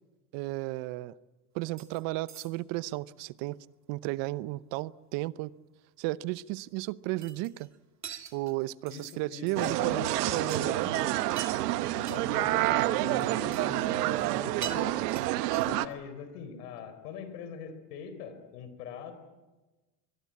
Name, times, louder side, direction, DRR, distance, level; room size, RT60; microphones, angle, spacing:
voice 1, 0.3-1.1 1.5-3.6 3.9-5.5 6.0-7.7 8.3-10.9 15.1-15.3, right 19 dB, 70° right, 18 dB, 0.9 m, -34 dB
sound 1, 1.8-2.0 2.3-2.8 7.2-7.8 8.0-9.2 9.5-9.7 10.1-10.2 10.5-10.9 11.2-11.7 12.1-12.2 13.1-13.7 14.0-14.4 14.6-15.9, right 8 dB, 35° right, 2.7 m, -44 dB
voice 2, 8.9-11.1 11.9-15.0 15.6-19.1, left 7 dB, 85° left, 10 dB, 4.1 m, -42 dB
sound 2, 9.6-15.9, right 16 dB, 90° right, 1.1 m, -28 dB
24.5 x 20.5 x 8.7 m, 1.2 s
supercardioid pair, 90°, 46 cm